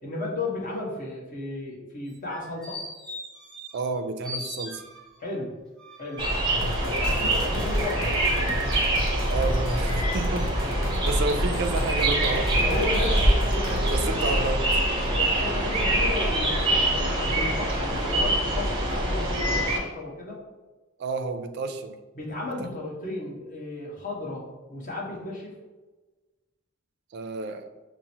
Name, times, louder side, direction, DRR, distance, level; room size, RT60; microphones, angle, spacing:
voice 1, 0.0-2.8 5.2-5.6 6.0-6.3 6.8-8.8 10.6-11.0 12.2-14.7 15.2-20.4 22.1-25.6, left 2 dB, 40° left, -3 dB, 1.0 m, -34 dB
sound 1, 2.1-4.0 4.2-5.3 5.8-8.4 8.9-9.0, left 1 dB, 5° left, 0.9 m, -41 dB
voice 2, 3.7-4.8 9.3-10.6 10.9-13.3 13.7-14.7 21.0-22.0 22.6-22.7 27.1-27.7, right 3 dB, 55° right, 8 dB, 0.3 m, -31 dB
sound 2, 6.2-19.8, right 1 dB, 25° right, 0.7 m, -24 dB
sound 3, 6.6-14.1, left 1 dB, 70° left, 0.4 m, -36 dB
5.7 x 2.0 x 2.8 m, 1.2 s
head